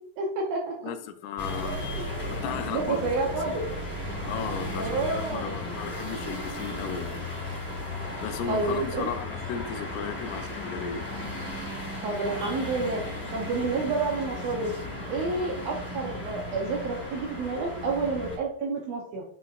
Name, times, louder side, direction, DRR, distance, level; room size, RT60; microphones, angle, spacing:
voice 1, 0.0-0.9 1.6-2.1 2.7-3.6 4.8-5.7 8.5-9.1 12.0-13.0 13.3-14.7 15.1-19.2, right 3 dB, 80° right, -1 dB, 1.5 m, -30 dB
voice 2, 0.8-1.8 2.3-3.6 4.3-7.2 8.2-11.1, left 7 dB, 85° left, 7 dB, 1.7 m, -35 dB
sound 1, 1.4-18.4, left 1 dB, 30° left, 2.4 m, -35 dB
7.3 x 5.8 x 2.5 m, 0.68 s
omnidirectional pair, 4.1 m